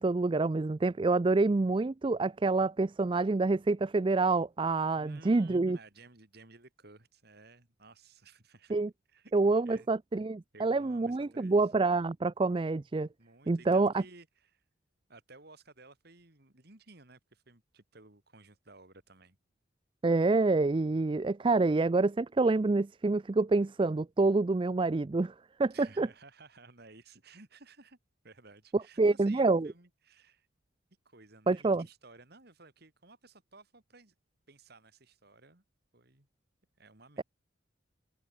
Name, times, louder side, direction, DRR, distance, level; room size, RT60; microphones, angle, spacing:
voice 1, 0.0-5.8 8.7-8.9 9.3-13.1 13.5-14.0 20.0-25.3 25.6-26.1 28.7-29.7 31.5-31.8, right 3 dB, 25° right, 0.4 m, -27 dB
voice 2, 5.0-8.8 9.1-9.4 9.6-9.9 10.5-11.7 13.2-14.6 15.1-19.4 25.7-28.0 28.2-30.5 31.0-34.1 34.5-35.6 35.9-36.3 36.8-37.2, right 3 dB, 55° right, 2.8 m, -56 dB
head